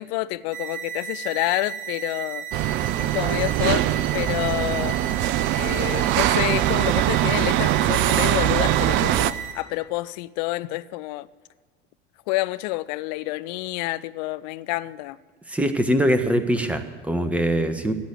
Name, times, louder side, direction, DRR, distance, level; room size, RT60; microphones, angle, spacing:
voice 1, 0.0-2.4 3.0-3.9 4.1-5.0 5.5-11.3 12.3-15.2, left 19 dB, 50° left, 0.6 m, -28 dB
sound 1, 0.5-9.5, right 8 dB, 25° right, 3.7 m, -34 dB
sound 2, 2.5-9.3, right 13 dB, 40° right, 0.6 m, -22 dB
voice 2, 15.5-17.9, equal, 5° right, 1.3 m, -22 dB
16.0 x 8.4 x 8.9 m
figure-of-eight pair, 75°, 29 cm